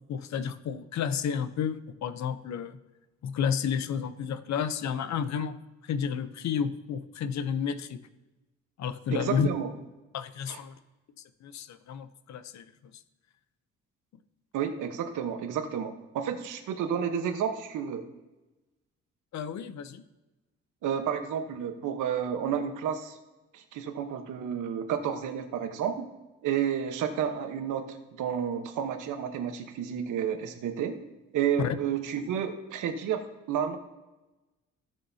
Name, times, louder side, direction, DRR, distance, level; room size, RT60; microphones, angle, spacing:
voice 1, 0.1-2.8 3.2-5.6 5.8-8.0 8.8-9.5 10.1-10.7 11.4-12.7 19.3-20.0 31.6-31.8, left 7 dB, 65° left, 12 dB, 0.8 m, -31 dB
voice 2, 9.1-9.7 10.5-10.6 14.5-18.0 20.8-23.2 23.5-26.1 26.4-31.0 31.3-33.8, right 8 dB, 80° right, 7 dB, 1.2 m, -31 dB
16.5 x 6.6 x 2.8 m, 1.1 s
cardioid pair, 90°, 30 cm